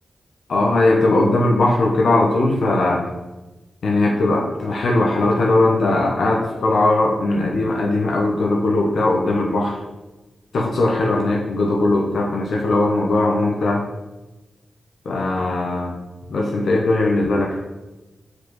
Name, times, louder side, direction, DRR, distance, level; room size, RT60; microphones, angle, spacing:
voice 1, 0.5-3.0 3.8-9.8 10.5-13.8 15.0-16.0 16.3-17.6, left 2 dB, 75° left, 0 dB, 1.0 m, -19 dB
4.9 x 4.8 x 6.2 m, 1.1 s
cardioid pair, 45°, 0 cm